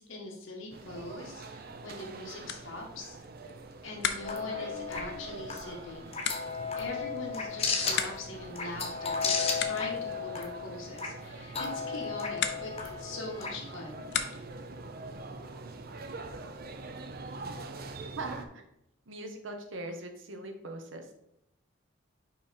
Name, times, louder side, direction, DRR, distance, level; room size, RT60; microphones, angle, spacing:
voice 1, 0.0-3.2 3.8-6.1 6.8-14.1, left 2 dB, 90° left, 0 dB, 1.7 m, -42 dB
sound 1, 0.7-18.5, right 3 dB, 50° right, 0.6 m, -44 dB
sound 2, 2.4-14.7, left 8 dB, 60° left, 0.6 m, -40 dB
sound 3, 4.2-13.8, left 5 dB, 30° left, 0.9 m, -35 dB
voice 2, 18.2-18.6 19.1-21.1, right 2 dB, 75° right, 5 dB, 1.1 m, -40 dB
5.4 x 5.0 x 4.3 m, 0.79 s
head